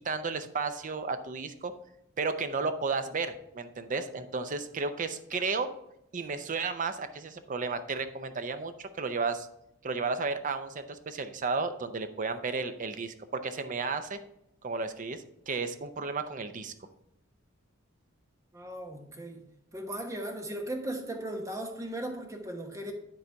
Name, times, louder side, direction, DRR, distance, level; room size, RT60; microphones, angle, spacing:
voice 1, 0.0-1.7 2.2-5.7 6.1-9.5 9.8-14.2 14.6-16.7, right 4 dB, 40° right, 10 dB, 0.6 m, -33 dB
voice 2, 18.5-19.4 19.7-22.9, right 1 dB, 15° right, 4 dB, 1.0 m, -37 dB
9.9 x 3.9 x 4.5 m, 0.80 s
head